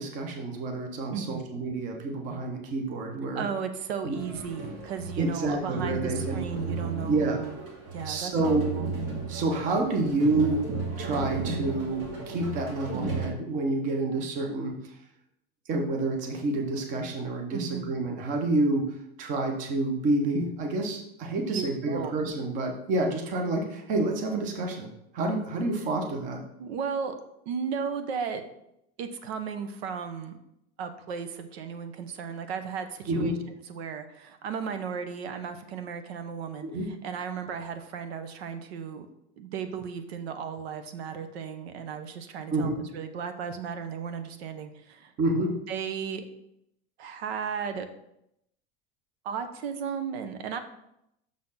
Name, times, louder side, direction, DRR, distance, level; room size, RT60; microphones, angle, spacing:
voice 1, 0.0-3.5 4.0-4.2 5.2-6.4 7.0-7.4 8.0-8.7 9.3-10.6 11.0-14.7 15.7-18.9 19.2-24.9 25.1-26.4 33.1-33.4 36.6-36.9 42.5-42.7 45.2-45.6, right 2 dB, 25° right, 3 dB, 0.8 m, -28 dB
voice 2, 1.1-1.5 3.4-7.6 7.9-8.9 17.5-17.9 21.5-22.1 26.6-27.2 27.5-28.4 29.0-30.4 30.8-33.4 33.7-36.7 37.0-39.1 39.4-45.1 45.7-46.2 47.0-47.9 49.2-50.6, right 6 dB, 80° right, 9 dB, 0.9 m, -35 dB
sound 1, 4.1-13.3, right 3 dB, 65° right, 2.3 m, -34 dB
6.4 x 4.2 x 5.6 m, 0.79 s
supercardioid pair, 175°, 31 cm